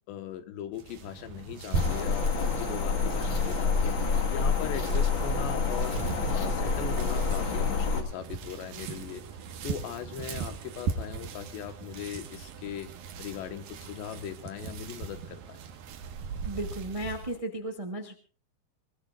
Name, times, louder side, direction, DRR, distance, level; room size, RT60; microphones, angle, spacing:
voice 1, 0.1-6.0 6.3-9.2 9.6-12.9 13.2-15.7, left 9 dB, 80° left, 9 dB, 3.6 m, -39 dB
sound 1, 0.7-17.4, right 5 dB, 65° right, 3.0 m, -39 dB
sound 2, 1.7-8.0, left 4 dB, 45° left, 1.6 m, -27 dB
voice 2, 16.4-18.1, right 1 dB, 35° right, 5 dB, 0.5 m, -35 dB
22.0 x 21.5 x 2.5 m, 0.34 s
omnidirectional pair, 5.0 m